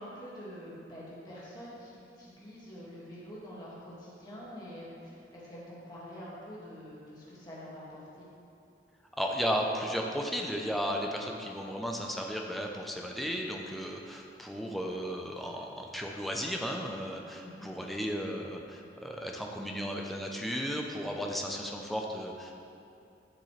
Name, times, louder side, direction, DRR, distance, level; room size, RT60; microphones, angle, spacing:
voice 1, 0.0-8.3 17.4-17.7, equal, 25° left, -7 dB, 2.1 m, -46 dB
voice 2, 9.2-22.5, equal, ahead, 0 dB, 0.6 m, -34 dB
12.0 x 6.7 x 3.3 m, 2.6 s
head